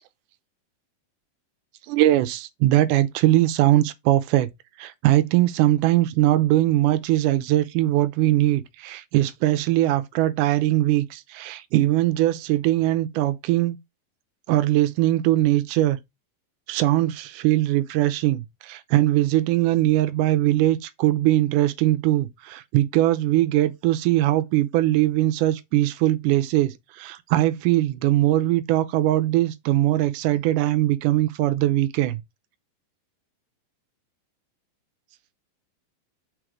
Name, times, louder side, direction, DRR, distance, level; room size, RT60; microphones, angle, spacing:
voice 1, 1.9-4.5 4.8-13.8 14.5-16.0 16.7-32.2, right 15 dB, 80° right, 1.9 m, -21 dB
5.1 x 4.1 x 4.6 m
omnidirectional pair, 4.1 m